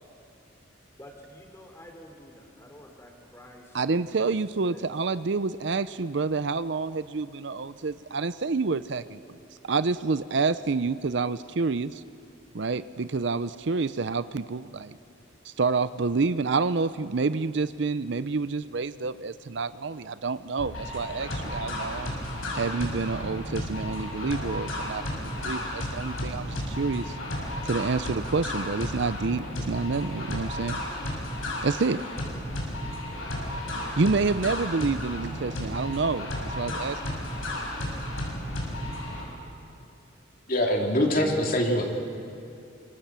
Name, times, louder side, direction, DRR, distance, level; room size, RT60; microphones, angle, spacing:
voice 1, 1.0-4.8, left 1 dB, 15° left, 2 dB, 3.4 m, -49 dB
voice 2, 3.7-9.2 9.6-12.0 12.5-15.0 15.5-22.1 22.5-27.1 27.6-30.8 31.6-32.0 34.0-37.2, right 4 dB, 60° right, 14 dB, 0.6 m, -28 dB
sound 1, 20.6-39.2, left 1 dB, 85° left, 6.4 m, -33 dB
voice 3, 40.5-41.9, left 1 dB, 45° left, 1 dB, 2.8 m, -23 dB
25.5 x 25.5 x 7.5 m, 2.6 s
head